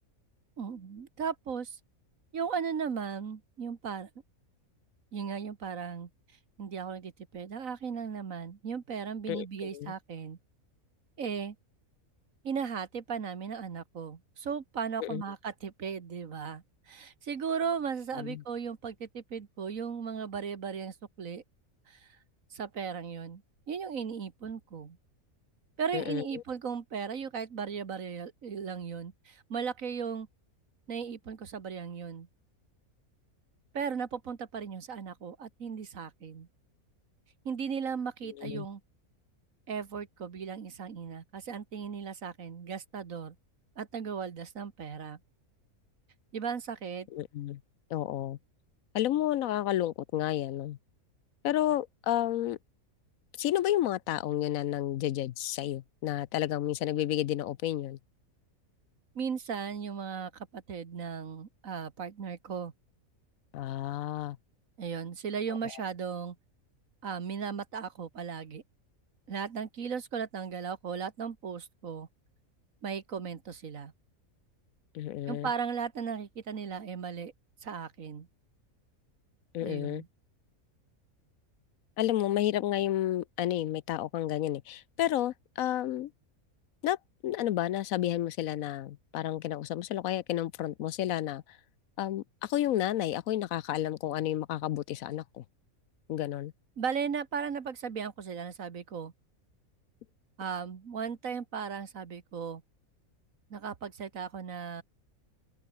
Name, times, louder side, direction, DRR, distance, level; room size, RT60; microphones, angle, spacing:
voice 1, 0.6-1.8 2.3-4.1 5.1-6.1 6.6-10.4 11.2-11.6 12.4-21.4 21.9-22.1 22.5-23.4 23.7-25.0 25.8-30.3 30.9-32.3 33.7-36.5 37.5-38.8 39.7-43.4 43.8-45.2 46.3-47.1 59.2-62.7 64.8-66.4 67.0-68.6 69.3-72.1 72.8-73.9 75.3-77.3 77.6-78.3 79.6-80.1 96.8-99.1 100.4-102.6 103.5-104.8, right 6 dB, 65° right, 2.0 m, -36 dB
voice 2, 25.9-26.4 38.4-38.7 47.1-47.6 47.9-48.4 48.9-50.8 51.4-52.6 53.4-58.0 63.5-64.4 74.9-75.5 79.5-80.0 82.0-86.1 86.8-87.0 87.2-91.4 92.0-95.4 96.1-96.5, left 13 dB, 75° left, 1.0 m, -31 dB
omnidirectional pair, 1.5 m